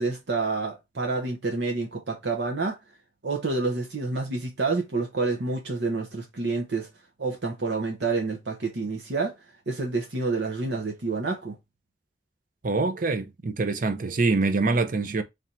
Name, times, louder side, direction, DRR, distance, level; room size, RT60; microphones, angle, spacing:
voice 1, 0.0-2.8 3.2-6.9 7.2-9.3 9.7-11.5, right 3 dB, 75° right, 0.9 m, -28 dB
voice 2, 12.6-15.2, right 3 dB, 50° right, 0.6 m, -25 dB
3.4 x 2.7 x 4.2 m
head